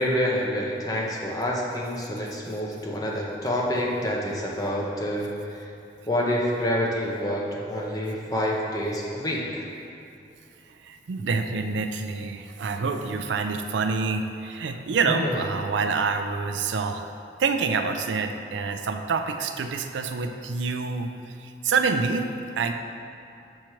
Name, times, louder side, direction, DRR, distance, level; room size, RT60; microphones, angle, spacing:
voice 1, 0.0-5.3 6.1-9.6 15.1-15.4, equal, 20° left, -3 dB, 0.7 m, -27 dB
voice 2, 10.8-17.1 17.4-22.7, right 4 dB, 85° right, 6 dB, 0.4 m, -27 dB
6.4 x 3.0 x 5.7 m, 2.7 s
head